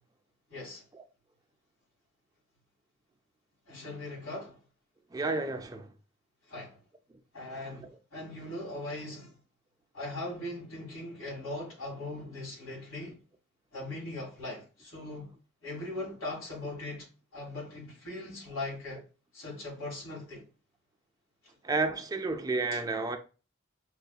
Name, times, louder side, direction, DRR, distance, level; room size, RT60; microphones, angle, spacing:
voice 1, 0.5-0.8 3.7-4.5 6.5-6.8 7.3-9.3 9.9-13.2 13.7-15.3 15.6-17.1 17.3-19.0 19.3-20.5 22.7-22.8, left 2 dB, 80° left, 2.2 m, -40 dB
voice 2, 5.1-5.9 7.8-8.0 21.6-23.2, right 3 dB, 15° right, 0.3 m, -31 dB
5.9 x 2.6 x 2.3 m
head